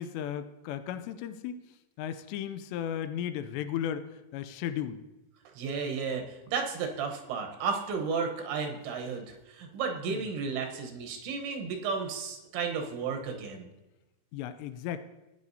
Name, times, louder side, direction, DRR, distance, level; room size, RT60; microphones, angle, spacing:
voice 1, 0.0-1.7 2.0-5.0 10.1-10.2 14.3-15.0, left 10 dB, 85° left, 11 dB, 2.7 m, -35 dB
voice 2, 5.6-13.7, right 5 dB, 85° right, 3 dB, 3.4 m, -33 dB
15.5 x 9.7 x 2.7 m, 1.0 s
omnidirectional pair, 5.1 m